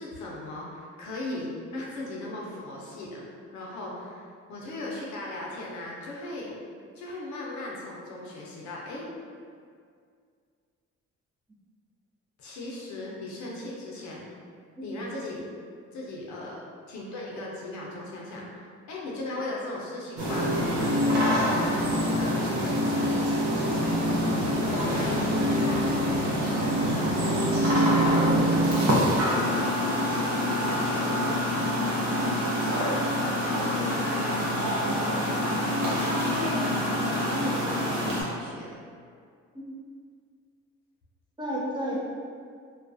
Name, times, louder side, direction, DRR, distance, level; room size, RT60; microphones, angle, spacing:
voice 1, 0.0-6.5 6.9-9.1 12.4-14.2 14.8-15.4 15.9-16.6 16.9-20.9 21.5-23.9 24.6-31.4 32.2-32.3 32.6-38.8 41.9-42.0, left 1 dB, 70° left, -3 dB, 0.6 m, -38 dB
voice 2, 14.8-15.1 20.8-20.9 32.2-32.9 39.5-39.8 41.4-42.0, right 1 dB, 15° right, -6 dB, 0.5 m, -34 dB
sound 1, 20.2-38.2, equal, 70° right, 0.7 m, -25 dB
2.3 x 2.2 x 2.5 m, 2.2 s
cardioid pair, 90°, 30 cm